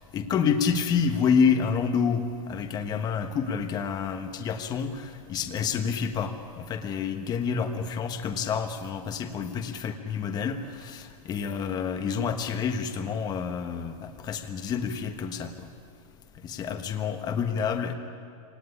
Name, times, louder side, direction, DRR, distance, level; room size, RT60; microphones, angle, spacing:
voice 1, 0.1-15.7 16.4-17.9, left 6 dB, 20° left, 7 dB, 1.3 m, -28 dB
24.5 x 18.5 x 9.9 m, 2.4 s
supercardioid pair, 160°, 19 cm